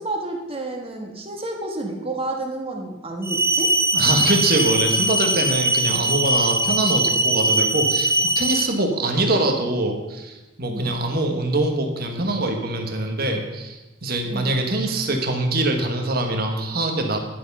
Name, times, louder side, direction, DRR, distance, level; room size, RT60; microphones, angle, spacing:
voice 1, 0.0-3.7 10.7-11.0 14.3-14.5, right 2 dB, 30° right, 2 dB, 1.5 m, -30 dB
sound 1, 3.2-8.7, right 1 dB, 10° right, 0.5 m, -21 dB
voice 2, 3.9-17.2, right 2 dB, 50° right, 3 dB, 1.5 m, -23 dB
11.0 x 7.2 x 5.5 m, 1.1 s
head